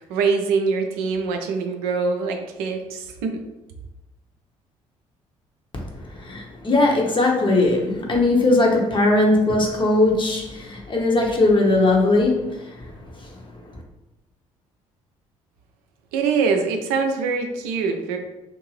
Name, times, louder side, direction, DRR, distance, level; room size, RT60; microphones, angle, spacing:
voice 1, 0.0-3.4 16.1-18.2, right 5 dB, 60° right, 4 dB, 0.4 m, -23 dB
voice 2, 6.2-12.7, left 2 dB, 30° left, 0 dB, 0.8 m, -19 dB
2.6 x 2.5 x 3.1 m, 0.95 s
figure-of-eight pair, 45°, 17 cm